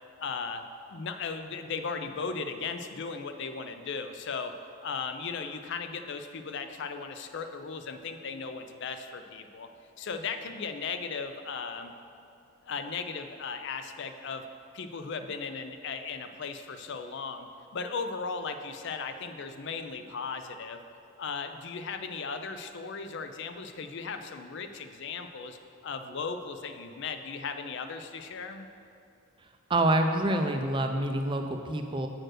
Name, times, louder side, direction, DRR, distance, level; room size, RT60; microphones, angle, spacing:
voice 1, 0.2-0.6 0.9-4.5 4.8-9.7 10.0-11.9 12.6-14.5 14.7-17.5 17.7-20.8 21.2-25.6 25.8-28.7, left 5 dB, 55° left, 8 dB, 0.4 m, -37 dB
voice 2, 29.7-32.1, right 1 dB, 20° right, 5 dB, 0.4 m, -27 dB
7.6 x 4.4 x 6.4 m, 2.6 s
head